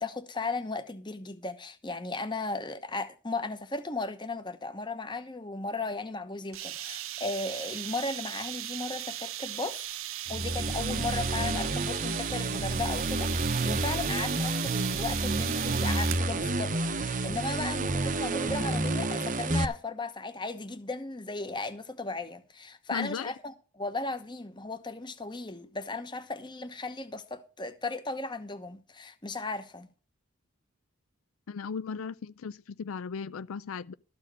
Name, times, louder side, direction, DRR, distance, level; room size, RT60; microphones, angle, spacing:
voice 1, 0.0-9.8 10.3-29.9, left 3 dB, 20° left, 1.0 m, -36 dB
sound 1, 6.5-16.3, right 13 dB, 75° right, 0.7 m, -37 dB
sound 2, 10.3-19.7, right 2 dB, 40° right, 0.8 m, -30 dB
voice 2, 22.9-23.3 31.5-33.9, left 6 dB, 80° left, 0.4 m, -37 dB
13.0 x 4.4 x 8.6 m
head